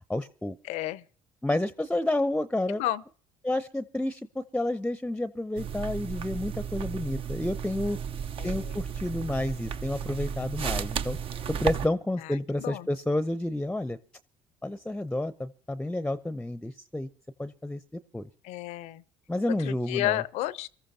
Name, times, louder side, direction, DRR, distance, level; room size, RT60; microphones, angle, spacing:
voice 1, 0.1-0.6 1.4-2.8 3.4-8.0 8.4-11.2 11.5-14.0 14.6-17.1 17.4-18.3 19.3-20.2, left 1 dB, 5° left, 0.7 m, -30 dB
voice 2, 0.6-1.0 2.7-3.0 8.4-8.7 12.2-12.9 18.4-19.0 19.6-20.7, left 15 dB, 65° left, 0.6 m, -32 dB
sound 1, 5.6-11.9, right 7 dB, 50° right, 0.7 m, -34 dB
25.5 x 14.0 x 2.8 m
hypercardioid pair, 60°, 12 cm